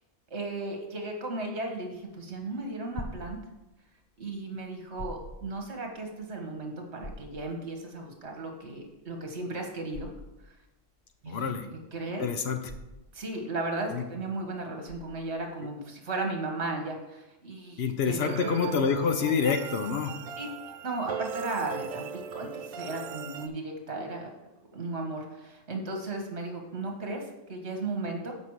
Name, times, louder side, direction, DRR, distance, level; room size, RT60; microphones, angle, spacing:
voice 1, 0.3-3.4 4.2-10.1 11.2-11.6 11.9-12.3 13.1-18.3 20.4-20.5 20.8-24.3 24.7-27.2 27.5-28.3, right 2 dB, 60° right, 2 dB, 1.7 m, -35 dB
sound 1, 2.1-15.5, left 1 dB, 35° left, 0.5 m, -46 dB
voice 2, 11.3-11.7 12.2-12.6 13.9-14.0 17.8-20.1, left 6 dB, 60° left, 7 dB, 1.0 m, -27 dB
sound 2, 18.2-23.5, right 7 dB, 90° right, 1.0 m, -39 dB
8.0 x 5.3 x 4.8 m, 0.99 s
omnidirectional pair, 1.3 m